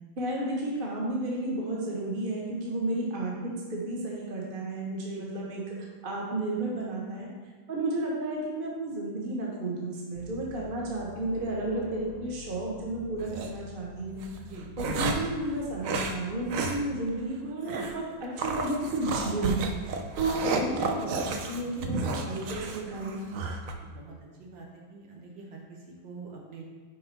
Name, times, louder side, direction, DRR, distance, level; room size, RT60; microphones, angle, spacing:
voice 1, 0.2-5.8 6.0-7.3 7.7-14.2 14.8-19.6 20.2-23.2, right 2 dB, 30° right, -3 dB, 1.1 m, -32 dB
sound 1, 10.1-17.6, left 7 dB, 70° left, 1.1 m, -48 dB
sound 2, 13.2-13.5 14.2-15.4 15.8-16.2 16.5-16.8 17.1-17.2 17.7-18.0 18.4-23.7, right 3 dB, 90° right, 0.7 m, -32 dB
voice 2, 19.7-20.1 23.8-26.6, right 4 dB, 70° right, -1 dB, 1.9 m, -46 dB
6.1 x 4.7 x 5.4 m, 1.4 s
omnidirectional pair, 2.2 m